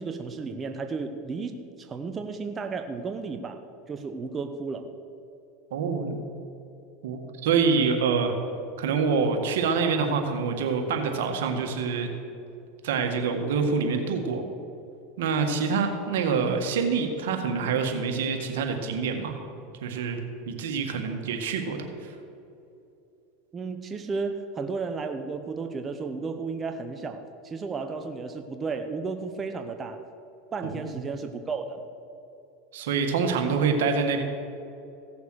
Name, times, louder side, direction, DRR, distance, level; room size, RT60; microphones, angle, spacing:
voice 1, 0.0-4.9 23.5-30.0 30.5-31.9, right 4 dB, 25° right, 6 dB, 0.8 m, -33 dB
voice 2, 5.7-6.2 7.0-8.3 8.8-12.1 12.8-14.4 15.2-19.4 19.8-20.2 20.5-22.1 30.7-30.9 32.7-34.2, right 5 dB, 80° right, 4 dB, 1.7 m, -26 dB
16.0 x 6.9 x 6.3 m, 2.8 s
supercardioid pair, 110°, 0 cm